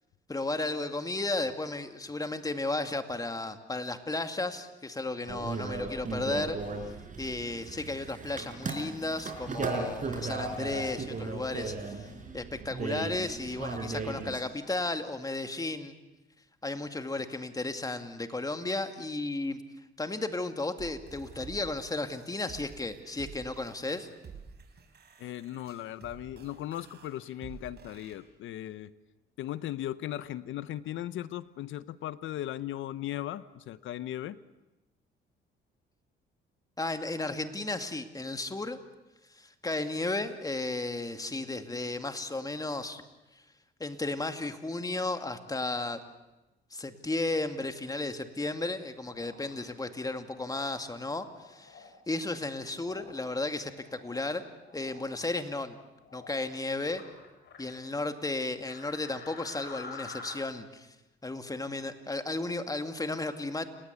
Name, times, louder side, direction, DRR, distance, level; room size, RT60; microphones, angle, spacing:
voice 1, 0.3-6.6 7.2-16.0 16.6-19.6 20.0-24.1 36.8-38.8 39.3-43.0 43.8-46.0 46.7-54.4 54.7-55.8 56.1-57.0 57.6-60.9 61.2-63.7, left 2 dB, 20° left, 7 dB, 2.3 m, -34 dB
sound 1, 5.3-14.4, right 3 dB, 40° right, 5.2 m, -36 dB
sound 2, 20.8-28.2, right 6 dB, 55° right, 5.0 m, -50 dB
voice 2, 25.2-28.9 29.4-34.4, left 13 dB, 80° left, 16 dB, 0.9 m, -37 dB
sound 3, 49.0-49.6 50.3-50.7 51.4-51.9 52.8-53.2 53.7-54.3 54.6-55.0 56.0-56.5 56.8-57.8 58.7-60.3, left 4 dB, 60° left, 6.6 m, -47 dB
29.5 x 19.0 x 8.3 m, 1.0 s
cardioid pair, 90°, 20 cm